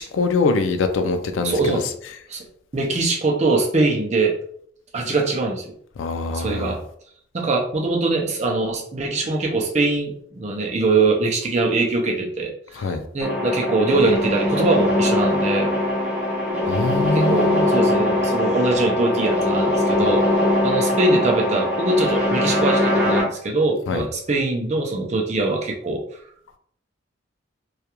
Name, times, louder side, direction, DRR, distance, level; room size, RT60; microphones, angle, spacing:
voice 1, 0.0-1.8 6.0-6.7 12.8-13.0 16.7-17.6 23.9-24.0, left 3 dB, 85° left, 8 dB, 0.4 m, -23 dB
voice 2, 1.4-1.9 2.3-2.4 2.7-4.4 4.9-5.7 6.3-6.8 7.3-15.7 17.1-20.2 20.6-26.0, right 3 dB, 35° right, 1 dB, 0.4 m, -22 dB
sound 1, 13.2-23.2, left 1 dB, 5° right, 0.9 m, -21 dB
2.3 x 2.2 x 2.8 m, 0.64 s
head